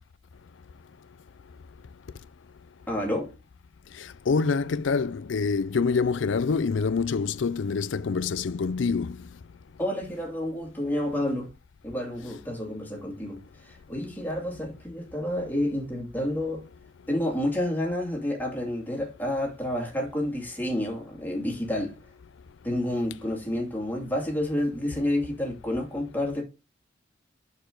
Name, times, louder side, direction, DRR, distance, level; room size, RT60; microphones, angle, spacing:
voice 1, 2.9-3.3 9.8-11.5 11.8-16.6 17.1-22.0 22.6-26.4, left 1 dB, 10° left, 2.4 m, -29 dB
voice 2, 4.3-9.2, left 5 dB, 75° left, 0.5 m, -26 dB
6.9 x 6.7 x 3.8 m
head